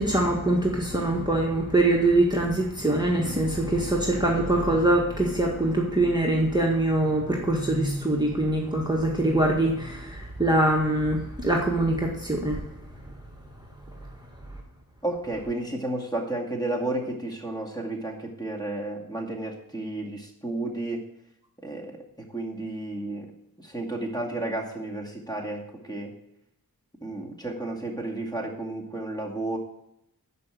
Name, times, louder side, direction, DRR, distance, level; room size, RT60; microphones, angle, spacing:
voice 1, 0.0-12.6, right 1 dB, 10° right, -2 dB, 1.8 m, -23 dB
voice 2, 15.0-21.1 21.6-23.3 23.6-26.2 27.0-29.6, right 2 dB, 10° left, 0 dB, 2.3 m, -32 dB
12.5 x 5.3 x 7.7 m, 0.81 s
wide cardioid pair, 55°, 36 cm